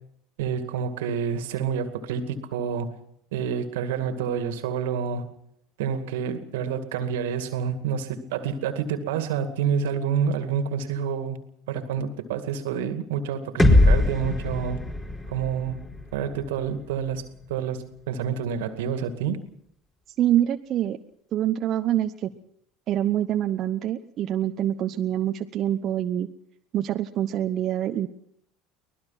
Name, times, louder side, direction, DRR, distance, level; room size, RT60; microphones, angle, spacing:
voice 1, 0.4-3.0 3.3-5.3 5.8-11.4 11.7-14.8 15.3-15.8 16.1-19.4, right 7 dB, 75° right, 9 dB, 2.2 m, -28 dB
sound 1, 13.6-17.5, left 2 dB, 20° left, 4.6 m, -23 dB
voice 2, 20.2-21.0 21.3-22.3 22.9-26.3 26.7-28.1, right 11 dB, 50° right, 6 dB, 1.0 m, -25 dB
24.0 x 19.5 x 5.9 m, 0.71 s
hypercardioid pair, 75°, 0 cm